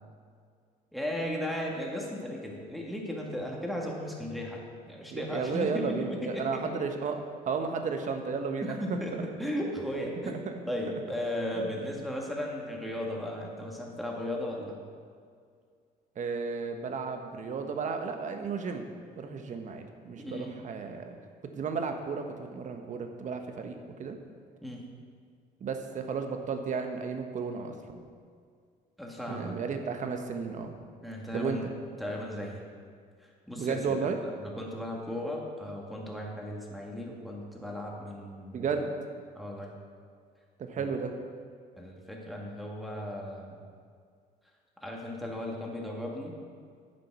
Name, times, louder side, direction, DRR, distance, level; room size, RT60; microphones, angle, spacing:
voice 1, 0.9-6.7 8.6-10.4 10.6-14.8 20.2-20.5 24.6-24.9 29.0-29.5 31.0-31.7 32.0-32.7 33.2-34.1 34.4-38.7 39.3-39.7 40.8-40.9 41.8-43.6 44.8-46.4, left 1 dB, ahead, -2 dB, 2.1 m, -36 dB
voice 2, 5.1-8.8 16.2-18.9 19.1-21.2 21.5-24.2 25.6-28.0 29.3-30.7 31.3-31.7 33.6-34.2 38.5-38.9 40.6-41.1, right 5 dB, 45° right, 5 dB, 1.2 m, -33 dB
9.9 x 7.6 x 6.2 m, 2.1 s
cardioid pair, 110°, 17 cm